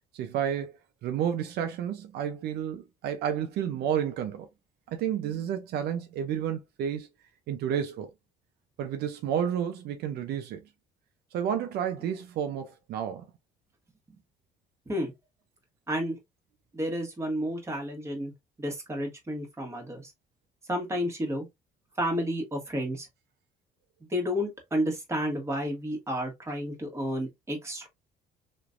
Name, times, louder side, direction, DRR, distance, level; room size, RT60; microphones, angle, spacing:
voice 1, 0.1-4.5 4.9-7.1 7.5-8.1 8.8-10.6 11.3-13.2, right 9 dB, 75° right, 0.6 m, -31 dB
voice 2, 16.7-18.3 18.6-20.1 20.7-21.5 22.0-23.1 24.1-27.9, equal, 15° right, 1.6 m, -31 dB
3.2 x 3.0 x 2.5 m
cardioid pair, 110°, 17 cm